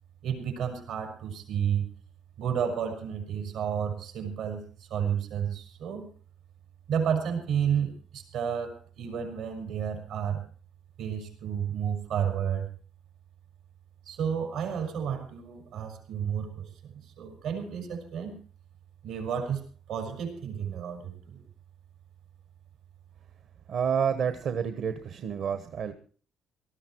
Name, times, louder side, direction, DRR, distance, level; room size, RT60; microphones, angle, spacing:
voice 1, 0.2-1.9 2.4-4.6 4.9-6.1 6.9-10.4 11.0-12.7 14.1-18.3 19.0-19.6 19.9-21.4, right 8 dB, 90° right, 4 dB, 5.6 m, -31 dB
voice 2, 23.7-25.9, right 7 dB, 65° right, 10 dB, 1.1 m, -29 dB
19.0 x 13.5 x 4.6 m, 0.41 s
cardioid pair, 125°, 0 cm